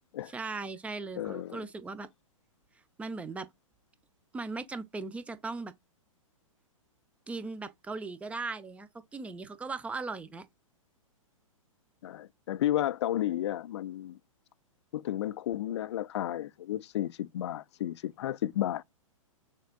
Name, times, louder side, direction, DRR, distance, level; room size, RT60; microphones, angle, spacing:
voice 1, 0.3-2.1 3.0-3.5 4.3-5.7 7.3-10.5, right 3 dB, 5° right, 0.4 m, -38 dB
voice 2, 1.2-1.6 12.0-14.2 14.9-18.8, left 12 dB, 55° left, 0.4 m, -32 dB
6.5 x 3.3 x 2.2 m
figure-of-eight pair, 115°, 18 cm